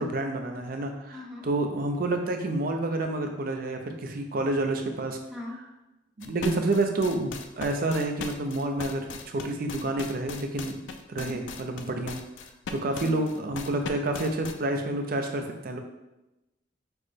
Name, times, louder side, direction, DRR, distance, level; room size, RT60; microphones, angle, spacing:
voice 1, 0.0-5.2 6.2-10.8 11.1-12.2 12.7-15.8, right 2 dB, 55° right, 4 dB, 0.5 m, -29 dB
voice 2, 1.1-1.5 5.3-5.6 11.2-11.6 12.9-13.2, left 2 dB, ahead, -4 dB, 0.8 m, -40 dB
sound 1, 6.2-14.5, left 5 dB, 80° left, 0.4 m, -38 dB
6.0 x 2.1 x 3.3 m, 0.97 s
head